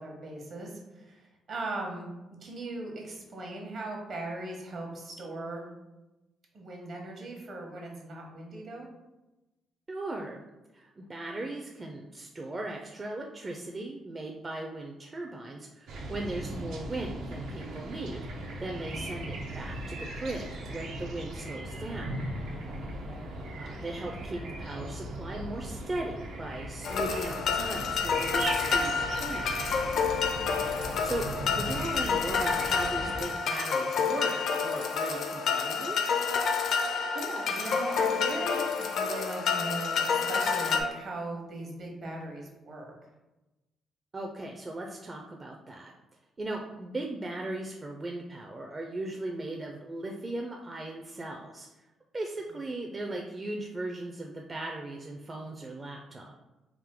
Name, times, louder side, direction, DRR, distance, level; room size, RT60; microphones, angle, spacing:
voice 1, 0.0-2.1 2.4-5.6 6.5-8.9 18.9-19.1 22.6-23.3 37.1-42.9 53.1-53.2, right 2 dB, 60° right, 0 dB, 1.1 m, -39 dB
voice 2, 9.9-10.4 10.7-22.2 23.6-29.8 31.0-36.0 44.1-45.9 46.4-51.9 52.1-56.3, right 2 dB, 30° right, 1 dB, 0.4 m, -38 dB
sound 1, 15.9-33.2, right 1 dB, 80° right, 0.6 m, -38 dB
sound 2, 26.8-40.8, left 5 dB, 70° left, 0.4 m, -29 dB
3.6 x 2.6 x 3.7 m, 1.0 s
cardioid pair, 90°, 0 cm